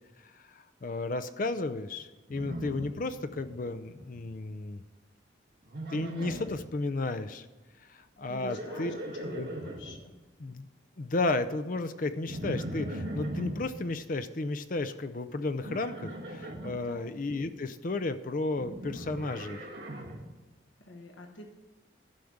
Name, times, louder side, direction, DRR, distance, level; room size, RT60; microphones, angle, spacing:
voice 1, 0.2-4.8 5.9-7.5 7.8-8.9 9.3-9.5 10.4-10.7 11.0-19.6, left 2 dB, 45° left, 11 dB, 0.5 m, -33 dB
Livestock farm animals working animals, 2.3-3.6 3.8-4.4 5.7-6.6 8.2-10.0 12.3-13.7 15.6-16.8 18.5-20.3, right 1 dB, 60° right, 1.5 m, -39 dB
voice 2, 8.3-8.9 9.2-10.1 16.8-17.1 20.8-21.5, left 2 dB, 85° left, 2 dB, 1.2 m, -46 dB
11.5 x 5.0 x 7.1 m, 1.2 s
head